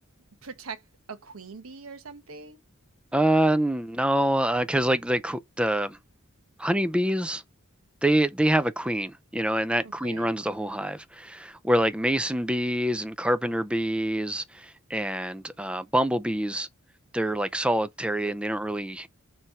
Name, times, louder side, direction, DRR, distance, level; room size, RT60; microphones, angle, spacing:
voice 1, 0.4-0.8 1.1-2.6 9.8-10.3, right 4 dB, 85° right, 1.1 m, -42 dB
voice 2, 3.1-6.0 6.6-7.4 8.0-16.7 17.1-19.1, right 1 dB, 5° right, 0.4 m, -26 dB
6.3 x 3.2 x 5.6 m
head